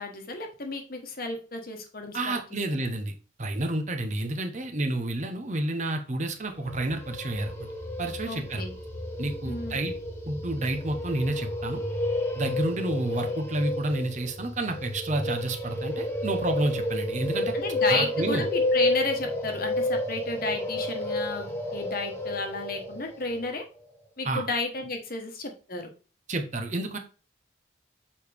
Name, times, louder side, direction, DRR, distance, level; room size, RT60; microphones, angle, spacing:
voice 1, 0.0-2.4 8.3-8.7 9.4-9.8 17.5-23.6 24.2-25.9, left 3 dB, 45° left, 4 dB, 1.2 m, -32 dB
voice 2, 2.1-3.1 3.4-7.7 8.0-8.6 9.2-9.9 10.3-11.8 12.3-17.5 17.9-18.4 24.2-24.5 26.3-27.0, right 2 dB, 35° right, 5 dB, 0.8 m, -30 dB
sound 1, 6.5-23.5, left 1 dB, 10° left, 1.2 m, -31 dB
7.0 x 4.8 x 3.4 m, 0.35 s
head